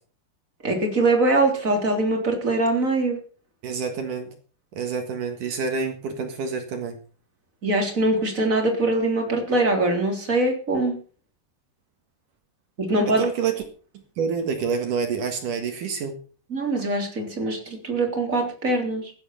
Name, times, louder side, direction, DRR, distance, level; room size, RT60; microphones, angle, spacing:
voice 1, 0.6-3.2 7.6-10.9 12.8-13.2 16.5-19.1, right 2 dB, 20° right, 3 dB, 3.5 m, -22 dB
voice 2, 3.6-4.3 4.7-7.0 13.1-13.5 14.2-16.2, right 5 dB, 60° right, 6 dB, 2.9 m, -27 dB
15.5 x 11.5 x 5.8 m, 0.40 s
omnidirectional pair, 4.8 m